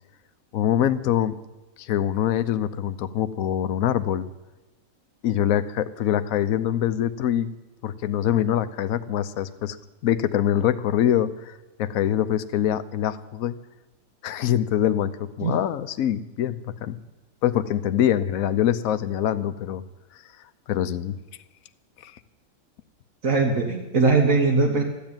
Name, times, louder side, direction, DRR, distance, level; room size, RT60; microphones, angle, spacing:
voice 1, 0.5-1.3 1.8-4.3 5.2-7.5 7.8-9.8 10.0-13.6 14.2-17.0 17.4-19.8 20.7-21.1 22.0-22.2, left 10 dB, 70° left, 11 dB, 1.1 m, -24 dB
voice 2, 23.2-24.8, right 3 dB, 65° right, 0 dB, 1.9 m, -20 dB
14.0 x 10.5 x 9.0 m, 1.1 s
omnidirectional pair, 1.6 m